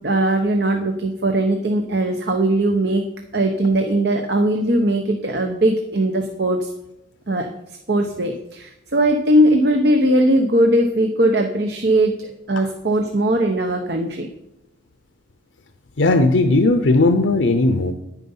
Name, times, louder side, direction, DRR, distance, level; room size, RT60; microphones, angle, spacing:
voice 1, 0.0-3.0 3.3-6.7 7.3-7.5 7.9-14.3, right 1 dB, 60° right, 4 dB, 0.9 m, -19 dB
voice 2, 16.0-17.9, left 2 dB, 85° left, 8 dB, 0.7 m, -16 dB
10.0 x 9.1 x 5.6 m, 0.85 s
head